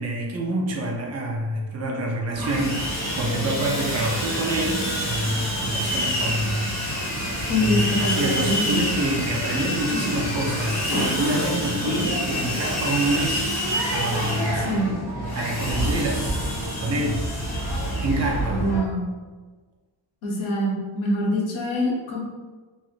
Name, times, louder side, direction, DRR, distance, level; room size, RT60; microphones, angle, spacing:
voice 1, 0.0-7.0 7.6-13.5 13.9-14.7 15.3-16.2 16.8-17.2 18.0-18.6, right 1 dB, 35° right, -1 dB, 0.5 m, -27 dB
Sawing, 2.3-18.8, equal, 35° left, 1.0 m, -27 dB
voice 2, 7.5-8.8 14.5-14.9 18.5-19.0 20.2-22.2, equal, 75° left, -2 dB, 0.8 m, -24 dB
3.0 x 2.5 x 2.4 m, 1.3 s
wide cardioid pair, 135°, 48 cm